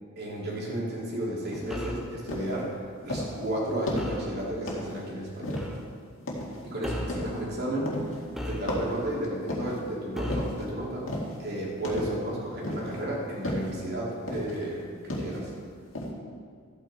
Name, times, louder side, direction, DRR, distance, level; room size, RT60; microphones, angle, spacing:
voice 1, 0.2-2.7 3.1-5.6 6.6-7.9 8.4-11.1 11.4-15.5, right 1 dB, 50° right, -4 dB, 2.8 m, -33 dB
sound 1, 1.5-1.8 2.3-2.6 3.1-3.4 3.9-4.2 4.7-5.0 5.4-5.8 6.3-6.6 7.1-7.5 7.9-8.2 8.7-9.8 10.3-10.6 11.1-11.4 11.8-12.3 12.6-13.0 13.4-13.8 14.3-14.6 15.1-15.5 15.9-16.1, left 1 dB, 65° left, 2.1 m, -33 dB
sound 2, 1.7-2.1 4.0-4.3 5.6-5.8 6.8-7.2 8.3-9.0 10.1-10.6, equal, ahead, 1.2 m, -35 dB
13.5 x 8.8 x 4.3 m, 2.2 s
head